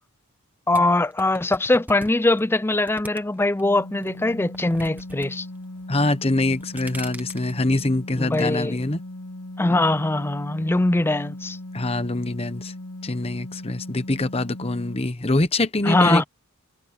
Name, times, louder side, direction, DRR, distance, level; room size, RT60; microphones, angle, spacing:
voice 1, 0.7-5.5 8.2-8.8 9.6-11.6 15.9-16.2, left 2 dB, 10° left, 0.4 m, -21 dB
sound 1, 0.7-3.6 4.0-5.3 5.5-6.0 6.4-7.5, right 1 dB, 10° right, 1.2 m, -41 dB
sound 2, 3.6-15.1, left 1 dB, 85° left, 1.2 m, -38 dB
voice 2, 5.9-9.0 11.7-12.7 13.0-16.2, left 2 dB, 25° left, 1.0 m, -24 dB
head